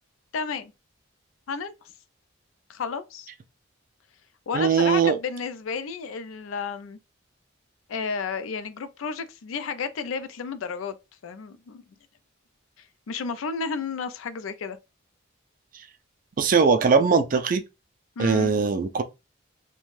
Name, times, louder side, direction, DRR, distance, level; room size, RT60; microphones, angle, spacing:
voice 1, 0.3-0.7 1.5-1.9 2.7-3.3 4.5-7.0 7.9-10.9 11.2-11.8 12.8-14.8 18.2-18.5, left 5 dB, 85° left, 0.4 m, -32 dB
voice 2, 4.5-5.2 16.4-17.6 18.2-19.0, right 5 dB, 40° right, 0.4 m, -20 dB
2.5 x 2.2 x 3.1 m
head